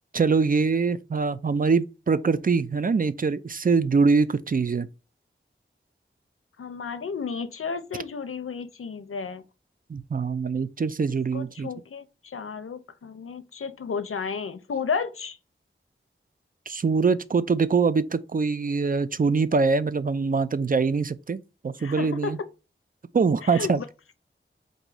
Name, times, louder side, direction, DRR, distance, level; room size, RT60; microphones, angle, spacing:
voice 1, 0.1-4.9 9.9-11.7 16.7-22.4 23.1-23.8, right 4 dB, 40° right, 0.4 m, -23 dB
voice 2, 6.6-9.4 11.3-15.4 21.8-22.5 23.4-23.8, left 5 dB, 90° left, 0.5 m, -33 dB
3.9 x 2.6 x 4.7 m
wide cardioid pair, 55°, 21 cm